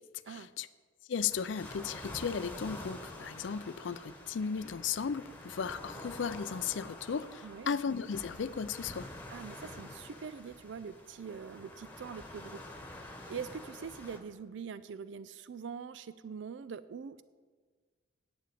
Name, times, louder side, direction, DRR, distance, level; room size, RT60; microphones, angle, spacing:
voice 1, 0.3-0.7 1.1-9.1, left 6 dB, 75° left, 15 dB, 0.4 m, -35 dB
sound 1, 1.3-14.2, left 1 dB, 10° left, 1.2 m, -47 dB
voice 2, 7.4-7.8 9.3-12.6 12.9-17.2, right 6 dB, 70° right, 15 dB, 0.4 m, -43 dB
9.1 x 7.6 x 8.4 m, 1.5 s
head